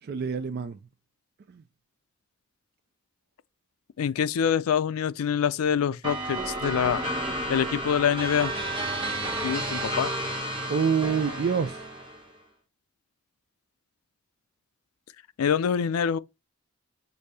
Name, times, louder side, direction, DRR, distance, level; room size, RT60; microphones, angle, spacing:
voice 1, 0.0-0.8 1.5-1.6 10.7-11.8, right 6 dB, 45° right, 0.3 m, -27 dB
voice 2, 4.0-7.0 7.5-8.5 9.4-10.1 15.4-16.2, left 7 dB, 85° left, 0.4 m, -25 dB
sound 1, 6.0-12.3, right 1 dB, 25° right, 1.2 m, -31 dB
6.5 x 2.7 x 2.7 m
head